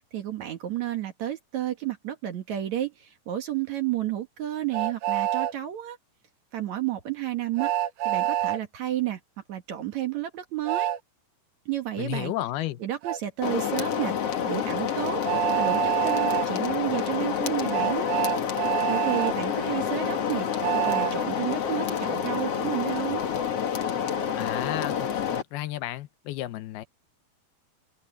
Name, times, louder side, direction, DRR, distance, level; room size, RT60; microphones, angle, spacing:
voice 1, 0.1-6.0 6.5-7.7 8.0-9.2 9.5-10.9 11.7-12.3 12.8-14.1 14.5-18.3 18.9-20.5 20.8-23.3, right 12 dB, 55° right, 2.5 m, -31 dB
Train, 4.7-5.5 7.6-8.6 10.7-11.0 13.0-13.2 15.2-16.5 17.7-19.3 20.6-21.1, right 13 dB, 85° right, 3.6 m, -26 dB
voice 2, 12.0-12.8 24.3-26.9, left 15 dB, 90° left, 2.8 m, -33 dB
sound 1, 13.4-25.4, left 8 dB, 50° left, 2.2 m, -28 dB
omnidirectional pair, 4.3 m